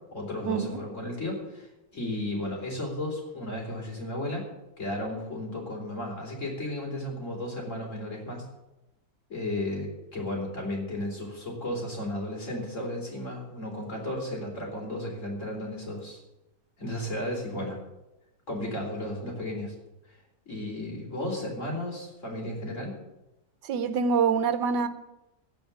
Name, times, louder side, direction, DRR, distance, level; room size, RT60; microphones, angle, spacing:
voice 1, 0.1-4.5 4.8-8.5 9.3-16.2 16.8-17.8 18.5-19.7 20.1-20.2 20.5-22.9, left 1 dB, 45° left, 4.3 m, -34 dB
voice 2, 23.7-24.9, right 6 dB, 85° right, 1.6 m, -25 dB
16.0 x 5.5 x 9.4 m
omnidirectional pair, 1.8 m